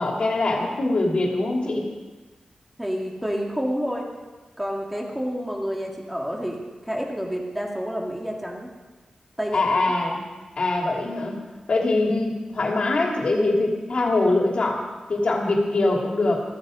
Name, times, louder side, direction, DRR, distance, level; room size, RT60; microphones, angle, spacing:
voice 1, 0.0-1.9 9.5-10.3 10.6-11.4 11.7-16.4, left 2 dB, 55° left, 0 dB, 2.9 m, -23 dB
voice 2, 2.8-4.1 4.6-8.7 9.4-9.9, equal, 5° right, -1 dB, 2.5 m, -29 dB
15.0 x 14.5 x 5.2 m, 1.2 s
wide cardioid pair, 150°, 2 cm